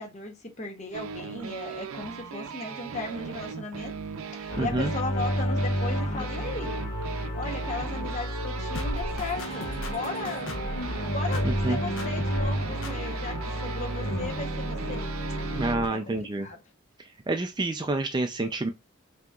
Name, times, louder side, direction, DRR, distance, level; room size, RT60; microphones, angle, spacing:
voice 1, 0.0-4.0 4.3-6.8 7.3-10.5 11.1-15.1 15.7-16.6, left 3 dB, 35° left, 0.8 m, -36 dB
sound 1, 0.9-15.7, right 6 dB, 80° right, 0.5 m, -38 dB
sound 2, 4.5-15.9, equal, 85° left, 1.3 m, -31 dB
voice 2, 4.6-4.9 11.4-11.8 15.6-16.5 17.3-18.7, right 2 dB, 20° right, 0.3 m, -28 dB
sound 3, 8.7-10.8 11.3-11.7 12.0-12.5 12.8-12.9, left 1 dB, 65° left, 0.8 m, -35 dB
5.9 x 2.9 x 2.3 m
head